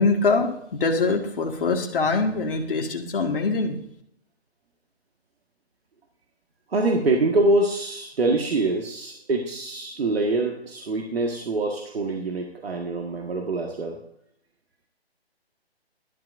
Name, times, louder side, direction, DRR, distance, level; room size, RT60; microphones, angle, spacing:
voice 1, 0.0-3.8, left 3 dB, 55° left, 1 dB, 2.0 m, -23 dB
voice 2, 6.7-14.0, right 2 dB, 65° right, 1 dB, 1.9 m, -25 dB
15.5 x 12.5 x 2.7 m, 0.73 s
figure-of-eight pair, 155°, 32 cm